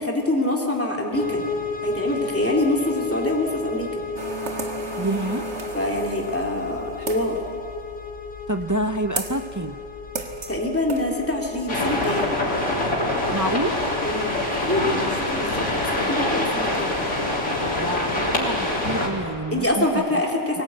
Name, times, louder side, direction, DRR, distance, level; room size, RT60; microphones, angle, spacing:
voice 1, 0.0-1.4 1.8-4.0 5.7-7.4 10.5-12.3 14.0-16.9 19.5-20.6, left 1 dB, 10° left, -1 dB, 3.0 m, -25 dB
sound 1, 1.1-19.9, left 4 dB, 55° left, 2.5 m, -35 dB
sound 2, 4.2-7.4 9.2-9.4 10.2-10.6 10.9-11.0, right 4 dB, 70° right, 1.9 m, -34 dB
voice 2, 5.0-5.5 8.5-9.8 13.3-13.7 17.8-20.0, right 1 dB, 20° right, 7 dB, 0.6 m, -27 dB
sound 3, 11.7-19.1, left 1 dB, 80° left, 4.0 m, -24 dB
23.0 x 18.0 x 8.9 m, 2.5 s
omnidirectional pair, 1.2 m